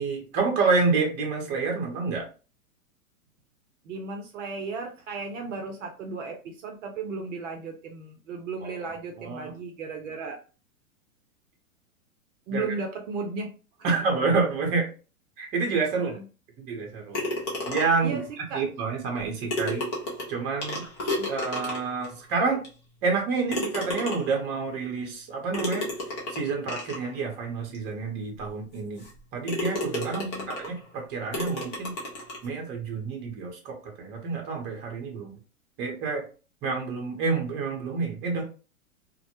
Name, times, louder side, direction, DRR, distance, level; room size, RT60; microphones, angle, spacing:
voice 1, 0.0-2.2 8.6-8.7 9.2-9.5 12.5-12.7 13.8-14.9 15.4-16.1 16.6-17.2 17.7-18.2 18.5-19.9 20.3-20.8 21.3-22.6 23.0-25.9 26.3-29.0 29.3-31.9 32.4-35.3 35.8-36.2 36.6-38.4, right 4 dB, 25° right, 1 dB, 0.7 m, -28 dB
voice 2, 3.8-10.4 12.5-13.5 13.8-13.9 15.9-16.2 18.0-18.2 18.5-18.6 21.2-21.3 30.2-30.5, right 4 dB, 60° right, 4 dB, 0.6 m, -35 dB
sound 1, 17.1-18.1 19.1-19.2 19.5-22.0 22.6-22.7 23.5-24.4 25.5-27.1 27.7-27.8 28.4-28.5 29.0-29.2 29.5-30.8 31.3-32.5, left 1 dB, 20° left, 0.4 m, -32 dB
2.1 x 2.0 x 2.9 m, 0.35 s
hypercardioid pair, 120°, 43 cm